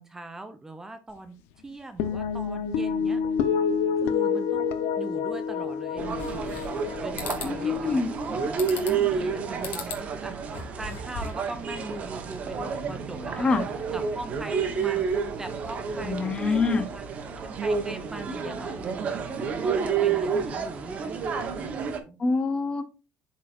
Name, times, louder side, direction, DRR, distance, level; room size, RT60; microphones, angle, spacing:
voice 1, 0.0-1.4 1.6-3.2 4.0-4.7 5.0-6.7 7.0-8.0 8.3-8.5 8.8-10.4 10.8-13.5 13.9-15.1 15.4-17.1 17.4-19.1 19.6-22.2, right 2 dB, 10° right, 8 dB, 0.5 m, -41 dB
sound 1, 2.0-8.6, left 6 dB, 85° left, 0.7 m, -28 dB
sound 2, 6.0-22.0, right 6 dB, 35° right, 0.9 m, -30 dB
sound 3, 6.2-6.9 7.2-7.5 8.6-9.1 9.6-10.0 10.4-11.5, left 5 dB, 60° left, 1.7 m, -37 dB
voice 2, 7.4-8.1 13.4-13.6 16.0-16.9 22.2-22.8, left 4 dB, 25° left, 10 dB, 0.7 m, -25 dB
12.0 x 4.2 x 2.5 m, 0.32 s
cardioid pair, 160°, 4 cm